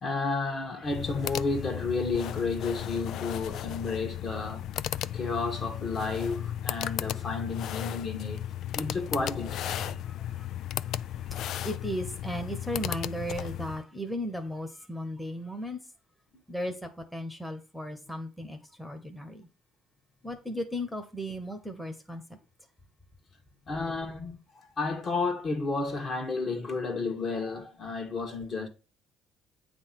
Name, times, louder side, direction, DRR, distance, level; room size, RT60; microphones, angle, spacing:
voice 1, 0.0-4.7 5.1-8.4 8.7-10.0 23.7-28.7, left 3 dB, 40° left, 1.6 m, -32 dB
sound 1, 0.8-13.8, left 11 dB, 65° left, 0.3 m, -35 dB
voice 2, 10.0-15.9 16.5-19.5 20.2-22.4, equal, 5° left, 1.1 m, -36 dB
8.8 x 3.4 x 5.9 m
cardioid pair, 115°, 0 cm